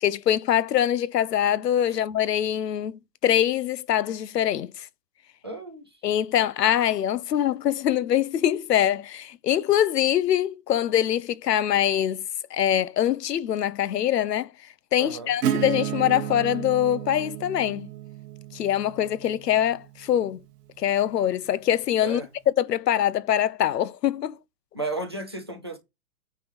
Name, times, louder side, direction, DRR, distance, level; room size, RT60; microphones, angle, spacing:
voice 1, 0.0-4.9 6.0-12.2 12.5-14.5 14.9-17.9 18.5-20.4 20.8-22.2 22.6-24.4, left 11 dB, 75° left, 0.9 m, -24 dB
voice 2, 5.4-5.9 15.0-15.3 22.0-22.3 24.7-25.8, right 2 dB, 20° right, 0.4 m, -33 dB
Acoustic guitar / Strum, 15.4-20.9, right 10 dB, 70° right, 1.5 m, -33 dB
9.3 x 3.5 x 6.1 m
hypercardioid pair, 175°, 49 cm